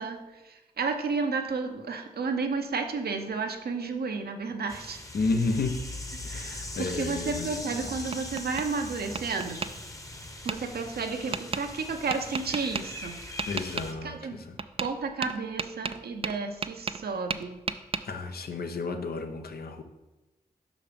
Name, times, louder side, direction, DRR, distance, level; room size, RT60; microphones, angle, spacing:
voice 1, 0.0-5.0 6.2-9.6 10.4-13.5 14.0-14.4 14.8-17.6, right 4 dB, 75° right, 5 dB, 0.8 m, -32 dB
sound 1, 4.7-13.9, left 2 dB, 20° left, 1.0 m, -40 dB
voice 2, 5.1-5.9 6.2-7.6 13.5-14.5 18.0-19.8, left 3 dB, 70° left, 6 dB, 0.8 m, -31 dB
Tap, 7.6-8.7 9.1-9.7 10.5-10.6 11.3-11.6 12.1-12.8 13.4-13.9 14.6-14.9 15.2-17.0 17.3-18.0, right 5 dB, 35° right, 0.4 m, -33 dB
5.7 x 5.1 x 5.1 m, 1.1 s
cardioid pair, 50°, 16 cm